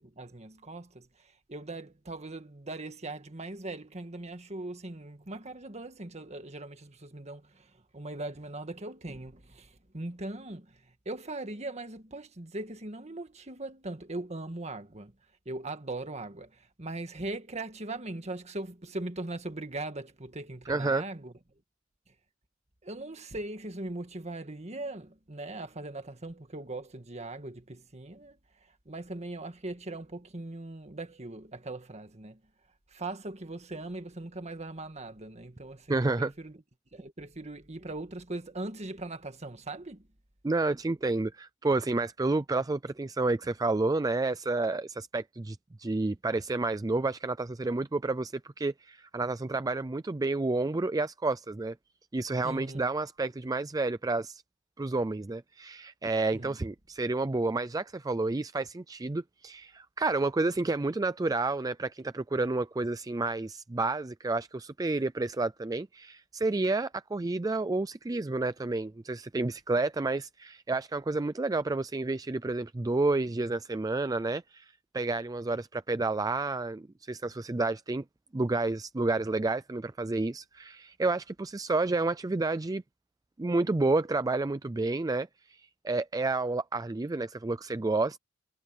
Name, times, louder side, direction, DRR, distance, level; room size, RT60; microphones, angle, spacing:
voice 1, 0.0-15.1 15.5-21.3 22.8-28.4 28.9-32.4 32.9-36.6 36.9-40.1 52.4-52.9 56.3-56.6, right 2 dB, 35° right, 1.8 m, -40 dB
voice 2, 20.7-21.0 35.9-36.3 40.4-51.7 52.1-54.4 54.8-78.0 78.3-82.8 83.4-88.2, right 3 dB, 20° right, 0.4 m, -30 dB
head